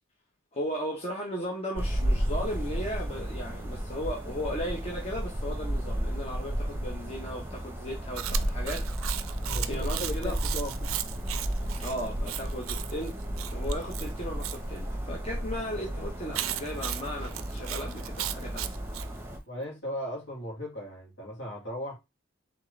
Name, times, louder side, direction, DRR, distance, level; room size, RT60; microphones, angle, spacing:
voice 1, 0.5-8.9 9.6-10.4 11.8-13.2 13.5-18.8, equal, 30° left, 1.0 m, -36 dB
sound 1, 1.8-19.4, equal, 10° right, 1.0 m, -33 dB
Chewing mastication, 8.2-14.6 16.3-19.1, right 13 dB, 85° right, 0.4 m, -36 dB
voice 2, 9.4-10.9 19.5-22.0, equal, 60° left, 2.5 m, -37 dB
4.5 x 3.6 x 3.3 m
head